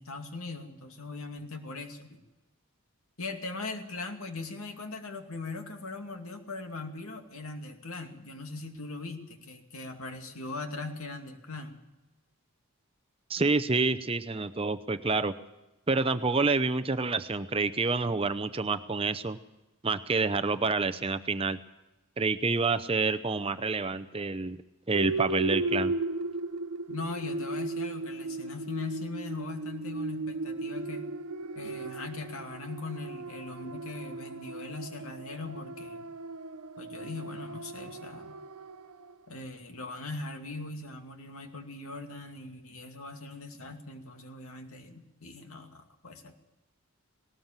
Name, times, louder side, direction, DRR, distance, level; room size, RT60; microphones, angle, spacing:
voice 1, 0.0-2.2 3.2-11.8 26.9-31.1 31.5-36.1 36.8-38.4 39.3-46.3, left 3 dB, 75° left, 5 dB, 2.5 m, -40 dB
voice 2, 13.3-15.3 15.9-19.4 19.8-21.6 22.2-24.6 24.9-25.9, right 3 dB, 25° right, 11 dB, 0.6 m, -28 dB
sound 1, 24.9-39.1, right 2 dB, 85° right, 0.7 m, -36 dB
19.0 x 18.5 x 7.4 m, 0.99 s
head